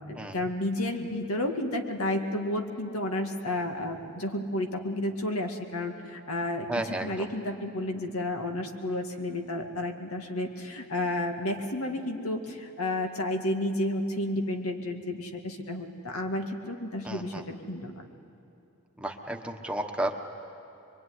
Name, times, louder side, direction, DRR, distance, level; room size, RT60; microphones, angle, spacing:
voice 1, 0.0-18.0, left 1 dB, 85° left, 3 dB, 2.2 m, -31 dB
voice 2, 6.7-7.3 17.0-17.4 19.0-20.1, right 1 dB, 5° right, 3 dB, 1.2 m, -33 dB
24.0 x 23.0 x 9.7 m, 2.7 s
head